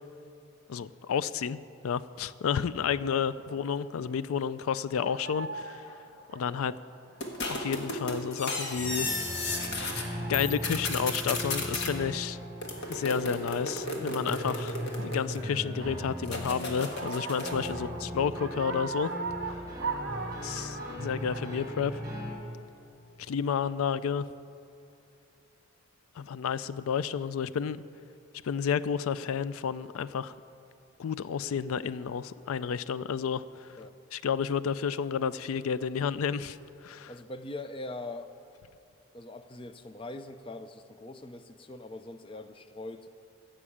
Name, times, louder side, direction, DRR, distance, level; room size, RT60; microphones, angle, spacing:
voice 1, 0.7-5.9 6.3-6.8 7.5-9.5 10.3-12.4 12.9-14.8 15.0-19.1 19.4-19.6 20.4-22.0 23.3-24.2 26.2-27.8 28.4-30.3 31.0-33.7 34.1-37.1, left 7 dB, 90° left, 17 dB, 0.4 m, -31 dB
sound 1, 2.8-3.0 3.8-4.2 4.6-4.7 5.0-7.6 7.9-8.6 9.0-9.8 10.5-10.9 11.7-11.8 12.0-13.7 14.1-14.5 15.0-16.4 16.8-21.4, right 3 dB, 50° right, 1.1 m, -40 dB
sound 2, 7.2-10.1 10.3-11.9 12.6-15.6 16.2-17.8, left 2 dB, 55° left, 1.6 m, -34 dB
sound 3, 8.7-22.3, equal, 15° right, 3.5 m, -38 dB
voice 2, 37.1-38.3 39.1-43.1, left 2 dB, 25° left, 10 dB, 0.5 m, -42 dB
15.0 x 7.4 x 8.6 m, 2.6 s
head